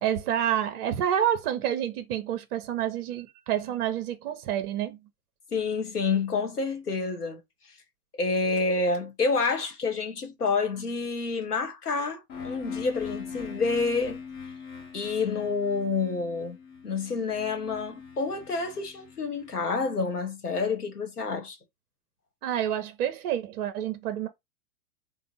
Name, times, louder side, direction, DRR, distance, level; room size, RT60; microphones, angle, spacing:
voice 1, 0.0-5.0 22.4-24.3, right 10 dB, 40° right, 0.6 m, -28 dB
voice 2, 5.5-7.4 8.2-14.2 14.9-16.6 16.8-21.6, left 4 dB, 90° left, 1.0 m, -28 dB
sound 1, 12.3-20.1, left 5 dB, 30° left, 0.9 m, -41 dB
3.4 x 2.0 x 4.0 m
figure-of-eight pair, 100°, 45 cm